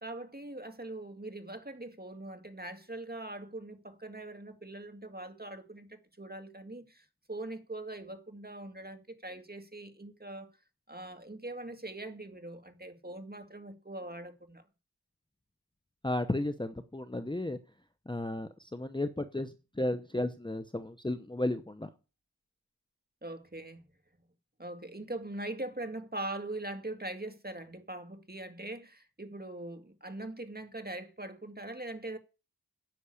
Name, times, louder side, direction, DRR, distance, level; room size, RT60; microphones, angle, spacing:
voice 1, 0.0-10.5 10.9-14.6 23.2-23.8 24.6-32.2, right 2 dB, 25° right, 2.0 m, -42 dB
voice 2, 16.0-17.6 18.1-21.9, left 1 dB, 10° left, 0.9 m, -34 dB
10.5 x 6.2 x 8.6 m
wide cardioid pair, 50°, 38 cm